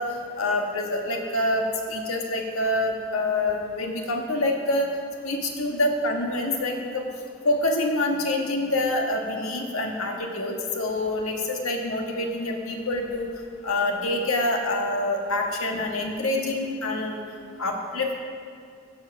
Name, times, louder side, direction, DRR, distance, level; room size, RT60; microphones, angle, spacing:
voice 1, 0.0-4.9 5.2-7.0 7.4-13.3 13.6-17.2 17.6-18.2, left 2 dB, 85° left, 2 dB, 1.5 m, -26 dB
16.0 x 5.8 x 5.8 m, 2.2 s
head